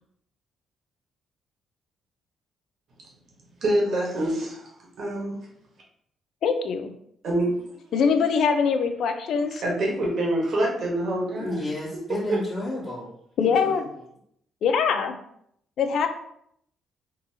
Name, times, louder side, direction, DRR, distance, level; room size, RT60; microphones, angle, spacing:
voice 1, 3.6-4.7 5.0-5.3 7.2-7.5 9.6-11.6 12.3-12.4, right 1 dB, 60° right, -2 dB, 1.3 m, -25 dB
voice 2, 6.4-6.9 7.9-9.6 13.4-13.9 14.6-15.2 15.8-16.1, left 6 dB, 70° left, 7 dB, 0.5 m, -23 dB
voice 3, 11.4-13.1 13.4-13.9, left 1 dB, 30° left, -9 dB, 1.3 m, -32 dB
3.8 x 2.7 x 2.8 m, 0.71 s
cardioid pair, 90°, 0 cm